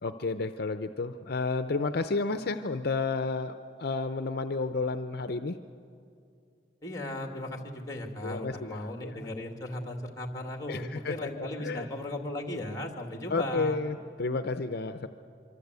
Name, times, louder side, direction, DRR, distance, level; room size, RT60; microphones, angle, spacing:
voice 1, 0.0-5.6 8.2-9.2 10.7-11.9 12.8-12.9 13.3-15.1, left 3 dB, 60° left, 9 dB, 0.7 m, -31 dB
voice 2, 6.8-13.8, left 1 dB, 20° left, 4 dB, 2.4 m, -36 dB
25.5 x 24.5 x 8.2 m, 2.5 s
head